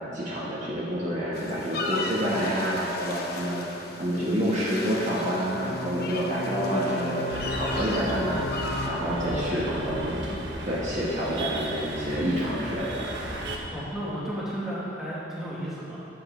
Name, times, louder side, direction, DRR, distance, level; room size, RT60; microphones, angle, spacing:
voice 1, 0.0-3.6 4.0-10.3 10.6-13.0, equal, 40° right, -7 dB, 1.5 m, -28 dB
sound 1, 1.3-8.9, left 2 dB, 55° left, 0.9 m, -34 dB
sound 2, 7.3-13.6, right 1 dB, 75° right, 1.2 m, -35 dB
voice 2, 9.2-10.0 13.7-16.0, equal, ahead, -10 dB, 2.5 m, -33 dB
13.0 x 7.8 x 3.3 m, 2.7 s
head